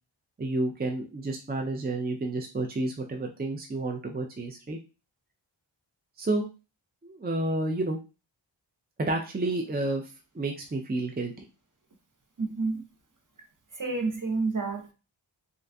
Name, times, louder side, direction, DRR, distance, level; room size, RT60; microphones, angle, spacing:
voice 1, 0.4-4.8 6.2-6.5 7.0-8.0 9.0-10.0 10.3-11.3, right 2 dB, 20° right, 2 dB, 0.4 m, -30 dB
voice 2, 12.4-12.8 13.8-14.9, right 3 dB, 40° right, 3 dB, 0.8 m, -29 dB
3.8 x 2.5 x 2.2 m, 0.31 s
wide cardioid pair, 50°, 47 cm